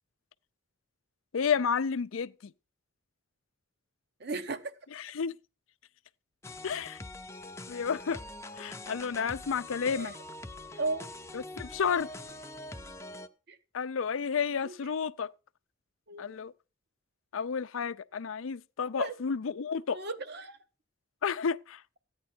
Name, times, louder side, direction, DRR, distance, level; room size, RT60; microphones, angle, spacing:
voice 1, 1.3-2.5 4.9-5.4 6.6-7.0 7.7-8.2 8.6-10.1 11.3-12.1 13.7-15.3 16.2-16.5 17.3-20.0 21.2-21.8, left 6 dB, 85° left, 0.5 m, -31 dB
voice 2, 4.2-4.7 9.9-10.1 10.8-11.1 13.5-13.6 14.6-14.7 16.1-16.3 19.0-19.1 19.9-20.6, right 3 dB, 55° right, 1.0 m, -35 dB
sound 1, 6.4-13.3, left 2 dB, 15° left, 0.6 m, -44 dB
14.5 x 9.5 x 4.4 m
head